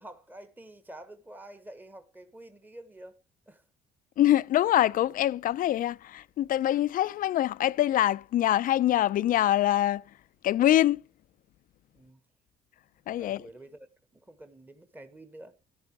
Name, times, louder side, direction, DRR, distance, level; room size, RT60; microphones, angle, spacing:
voice 1, 0.0-3.1 3.5-3.6 11.9-12.2 13.2-15.5, right 1 dB, 10° right, 1.3 m, -48 dB
voice 2, 4.2-10.0 10.4-11.0 13.1-13.5, left 13 dB, 55° left, 0.5 m, -24 dB
14.0 x 10.5 x 4.7 m
cardioid pair, 110°, 17 cm